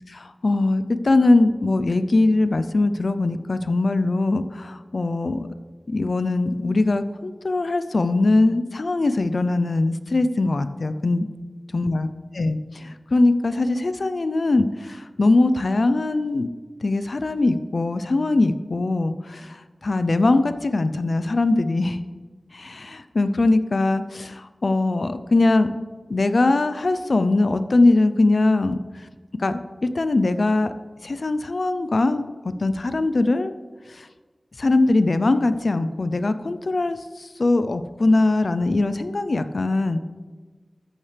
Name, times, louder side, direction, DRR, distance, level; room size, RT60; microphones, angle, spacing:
voice 1, 0.1-5.5 5.9-11.3 11.7-12.1 12.4-16.5 16.8-22.0 22.5-25.7 26.1-28.8 29.4-30.7 31.0-32.2 32.6-33.5 33.9-34.1 34.6-40.0, left 2 dB, 65° left, 11 dB, 0.5 m, -21 dB
13.0 x 8.8 x 3.4 m, 1.4 s
wide cardioid pair, 75°, 0 cm